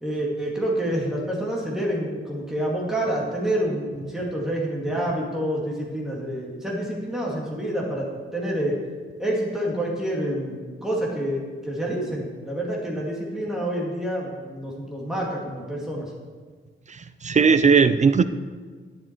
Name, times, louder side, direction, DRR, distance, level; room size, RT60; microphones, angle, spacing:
voice 1, 0.0-8.8 9.2-16.1, right 1 dB, ahead, -3 dB, 2.1 m, -28 dB
voice 2, 16.9-18.2, right 5 dB, 35° right, 12 dB, 0.4 m, -18 dB
11.0 x 11.0 x 4.5 m, 1.5 s
wide cardioid pair, 165°, 21 cm